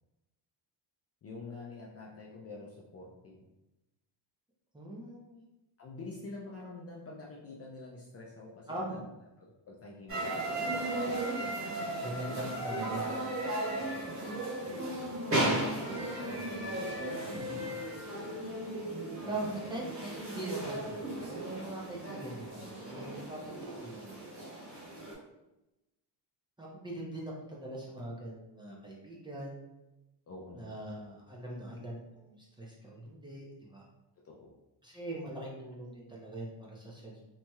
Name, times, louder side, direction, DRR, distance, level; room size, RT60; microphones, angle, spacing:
voice 1, 1.2-3.4 5.8-9.0 9.4-10.5 15.0-15.4 19.3-19.5 24.0-24.1 30.3-30.9 34.2-34.6, left 3 dB, 35° left, -3 dB, 0.4 m, -47 dB
voice 2, 4.7-5.4 8.7-9.0 12.0-14.3 14.6-14.9 16.1-16.9 19.3-24.2 26.6-29.7 30.5-33.8 34.8-37.1, right 1 dB, 10° right, -4 dB, 0.6 m, -42 dB
sound 1, 10.1-25.1, right 1 dB, 30° right, 1.5 m, -36 dB
2.8 x 2.8 x 2.3 m, 0.96 s
cardioid pair, 100°, 45 cm